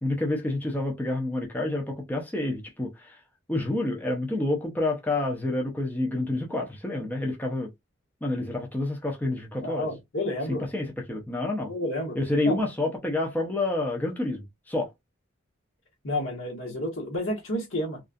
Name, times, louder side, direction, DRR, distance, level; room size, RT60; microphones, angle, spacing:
voice 1, 0.0-3.1 3.5-7.7 8.2-9.9 10.7-11.7 12.2-14.9, left 2 dB, 10° left, 0.5 m, -28 dB
voice 2, 9.6-10.6 11.6-12.2 12.4-12.7 16.0-18.0, left 1 dB, 80° left, 1.1 m, -30 dB
2.4 x 2.3 x 2.5 m
head